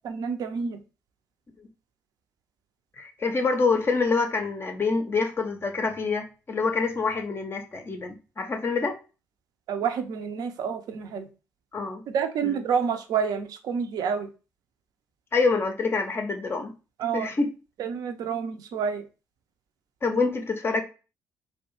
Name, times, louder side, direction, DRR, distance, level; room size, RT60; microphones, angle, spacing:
voice 1, 0.0-0.8 9.7-11.2 12.1-14.3 17.0-17.3 17.8-19.0, right 7 dB, 50° right, 0.4 m, -28 dB
voice 2, 3.0-9.0 11.7-12.0 12.4-12.6 15.3-16.7 17.1-17.5 20.0-20.8, left 4 dB, 30° left, 0.5 m, -26 dB
2.5 x 2.1 x 2.9 m
figure-of-eight pair, 45°, 8 cm